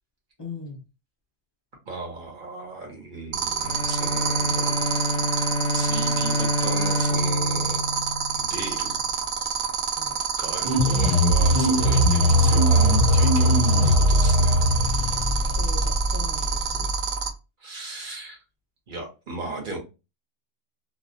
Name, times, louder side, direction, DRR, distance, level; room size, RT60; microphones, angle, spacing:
voice 1, 0.4-0.8 9.9-10.2 15.4-16.9, left 4 dB, 30° left, -1 dB, 0.4 m, -40 dB
voice 2, 1.9-4.8 5.7-7.8 8.4-9.0 10.4-14.6 17.6-18.4 18.9-19.8, right 2 dB, 45° right, 1 dB, 0.9 m, -36 dB
sound 1, 3.3-17.3, right 8 dB, 60° right, 0.5 m, -26 dB
Bowed string instrument, 3.6-9.0, left 1 dB, 90° left, 1.0 m, -28 dB
sound 2, 10.6-17.3, equal, 85° right, 1.1 m, -20 dB
2.3 x 2.1 x 2.6 m, 0.29 s
omnidirectional pair, 1.3 m